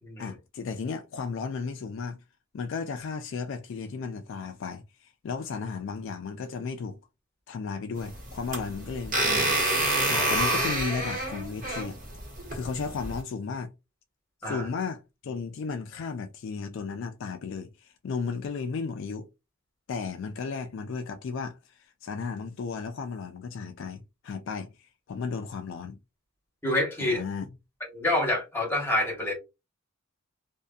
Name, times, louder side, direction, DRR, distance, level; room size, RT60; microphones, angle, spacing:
voice 1, 0.2-2.2 2.5-7.0 7.5-9.6 10.1-12.0 12.5-13.7 14.4-19.2 19.9-26.0 27.0-27.5, left 5 dB, 60° left, 0.3 m, -34 dB
sound 1, 8.0-13.2, right 1 dB, 40° right, 1.3 m, -27 dB
voice 2, 26.6-27.2 27.9-29.3, left 1 dB, 10° left, 1.1 m, -27 dB
2.6 x 2.5 x 2.2 m
head